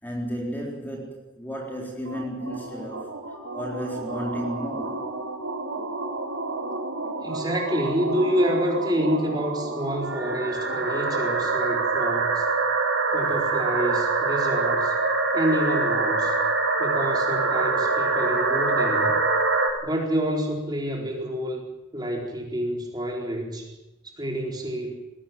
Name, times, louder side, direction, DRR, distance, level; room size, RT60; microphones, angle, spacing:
voice 1, 0.0-3.1 3.5-5.1, equal, 10° left, 0 dB, 3.9 m, -33 dB
sound 1, 2.1-19.7, right 3 dB, 80° right, 5.2 m, -26 dB
voice 2, 7.2-12.5 13.1-14.9 15.3-16.4 16.8-19.1 19.8-21.6 21.9-23.7 24.1-24.9, equal, 20° right, 0 dB, 4.3 m, -28 dB
20.5 x 17.5 x 8.9 m, 0.96 s
head